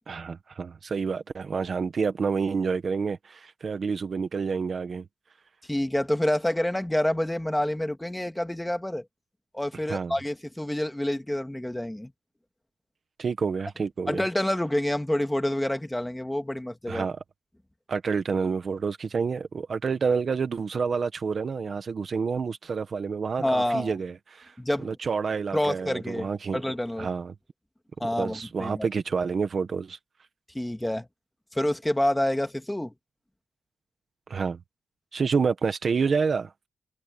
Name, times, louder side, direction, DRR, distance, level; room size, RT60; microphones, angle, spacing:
voice 1, 0.1-5.1 9.9-10.1 13.2-14.2 16.9-17.2 17.9-24.5 24.8-26.6 27.0-27.3 28.2-30.0 34.3-34.6 35.1-36.7, right 5 dB, 40° right, 1.3 m, -28 dB
voice 2, 5.7-9.0 9.5-12.1 14.1-17.1 23.4-23.9 24.6-24.9 25.5-27.1 28.0-28.9 30.5-31.1 31.5-32.9, left 1 dB, 5° left, 1.7 m, -28 dB
wide cardioid pair, 175°, 0 cm